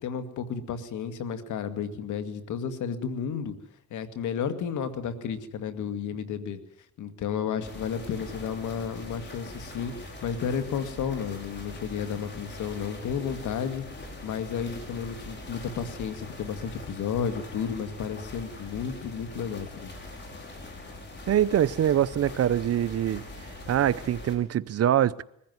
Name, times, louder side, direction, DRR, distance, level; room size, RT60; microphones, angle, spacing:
voice 1, 0.0-3.6 3.9-6.6 7.0-13.8 14.2-19.9, left 7 dB, 75° left, 2.2 m, -32 dB
sound 1, 7.6-24.4, left 2 dB, 35° left, 5.5 m, -42 dB
voice 2, 21.3-23.2 23.7-25.2, right 11 dB, 55° right, 0.7 m, -24 dB
21.5 x 15.0 x 9.7 m
cardioid pair, 90°, 30 cm